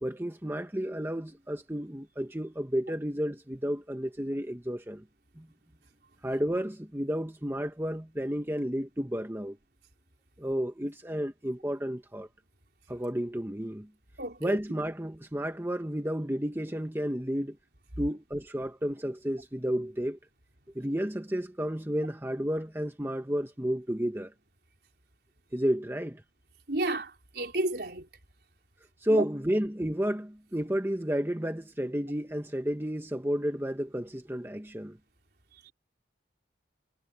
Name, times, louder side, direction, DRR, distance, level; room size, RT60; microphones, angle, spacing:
voice 1, 0.0-5.0 5.4-5.5 6.2-9.6 10.4-12.3 12.9-13.9 14.4-17.6 18.0-20.2 20.7-24.3 25.5-26.2 29.0-35.0, equal, 15° right, 1.1 m, -31 dB
voice 2, 14.2-14.6 26.7-28.1 29.1-29.2, right 2 dB, 65° right, 4.4 m, -31 dB
head